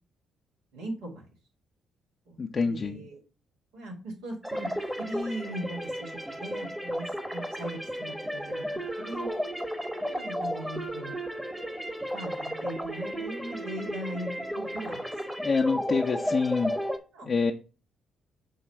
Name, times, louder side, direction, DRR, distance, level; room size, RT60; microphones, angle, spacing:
voice 1, 0.7-1.2 2.3-2.4 2.6-3.2 3.7-4.7 5.0-7.1 7.3-9.3 10.0-11.1 12.1-15.0 17.1-17.3, right 1 dB, 80° right, -2 dB, 2.5 m, -39 dB
voice 2, 2.4-3.0 15.4-16.7 17.2-17.5, left 4 dB, 45° left, 1 dB, 0.7 m, -26 dB
sound 1, 4.4-17.0, equal, 10° right, 1.2 m, -33 dB
6.4 x 3.2 x 5.6 m, 0.34 s
hypercardioid pair, 50°, 0 cm